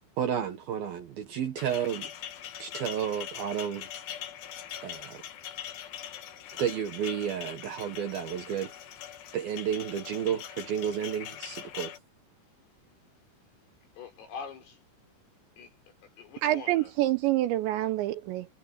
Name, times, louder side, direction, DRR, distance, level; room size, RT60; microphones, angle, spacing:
voice 1, 0.2-2.1 2.6-3.9 4.8-5.2 6.6-8.7 9.3-11.9, right 8 dB, 65° right, 2.6 m, -31 dB
sound 1, 1.6-12.0, left 10 dB, 65° left, 3.5 m, -42 dB
voice 2, 14.0-14.8 15.6-16.9, left 6 dB, 80° left, 8.4 m, -44 dB
voice 3, 16.4-18.5, right 15 dB, 80° right, 2.7 m, -27 dB
omnidirectional pair, 5.9 m